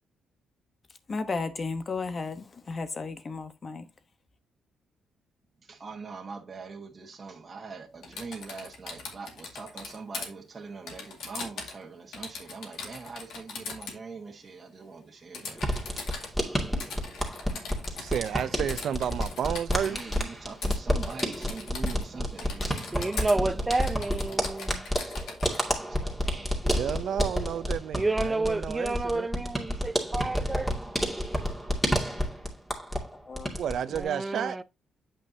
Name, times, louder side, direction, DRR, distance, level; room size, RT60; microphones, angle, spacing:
voice 1, 1.1-3.9 33.3-33.5, left 4 dB, 35° left, 1.1 m, -34 dB
voice 2, 5.7-15.9 19.8-23.7 24.3-24.4 25.7-26.6, right 4 dB, 35° right, 1.4 m, -43 dB
Typing, 8.0-10.3 10.9-11.8 12.1-14.0 15.3-16.3 16.8-18.4 18.7-20.2 20.6-20.8 21.0-22.1 22.4-23.4 23.7-25.6, left 4 dB, 75° left, 2.1 m, -40 dB
sound 1, 15.6-33.1 33.4-34.0, equal, 5° left, 2.3 m, -30 dB
voice 3, 18.0-20.0 26.7-29.3 33.6-34.6, right 9 dB, 65° right, 0.7 m, -31 dB
voice 4, 22.9-24.9 26.6-26.8 27.9-30.9 33.9-34.6, right 2 dB, 15° right, 0.6 m, -30 dB
8.6 x 5.4 x 2.8 m
cardioid pair, 90°, 0 cm